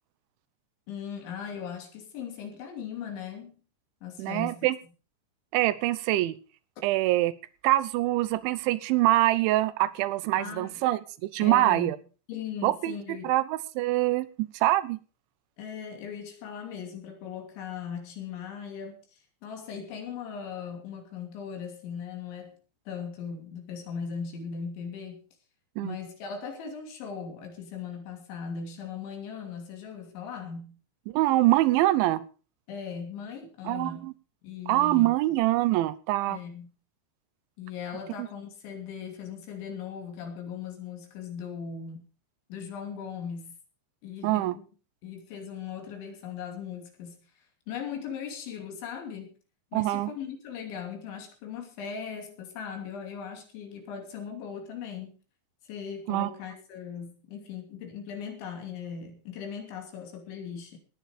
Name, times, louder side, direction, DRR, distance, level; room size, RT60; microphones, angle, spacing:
voice 1, 0.9-3.6 4.0-4.7 10.3-10.9 11.4-11.9 12.3-13.4 15.6-22.6 22.9-25.2 25.8-30.8 32.7-34.1 34.4-35.1 36.3-36.7 37.6-42.0 42.5-43.6 44.0-44.6 45.0-47.2 47.7-49.3 49.7-55.1 55.7-60.8, left 7 dB, 80° left, 4 dB, 5.2 m, -39 dB
voice 2, 4.2-4.8 5.5-6.4 6.8-7.3 7.6-12.0 12.6-13.0 13.2-15.0 25.8-26.0 31.1-32.2 33.7-34.1 34.7-36.4 38.2-38.3 44.2-44.6 49.7-50.1 56.1-56.3, right 16 dB, 90° right, 16 dB, 3.3 m, -24 dB
18.5 x 10.5 x 5.1 m, 0.36 s
omnidirectional pair, 5.2 m